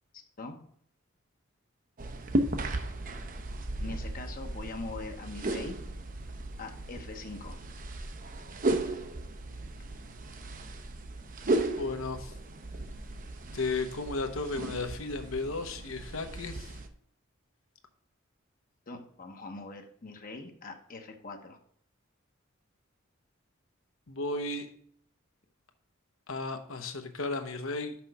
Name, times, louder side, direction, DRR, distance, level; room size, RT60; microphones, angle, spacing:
voice 1, 0.1-0.6 3.8-5.8 6.6-7.6 18.9-21.6, left 3 dB, 45° left, 4 dB, 0.9 m, -42 dB
sound 1, 2.0-16.9, right 2 dB, 40° right, 0.7 m, -35 dB
voice 2, 11.8-12.3 13.5-16.8 24.1-24.7 26.3-28.0, left 3 dB, 75° left, 6 dB, 1.0 m, -34 dB
6.0 x 5.7 x 4.7 m, 0.63 s
head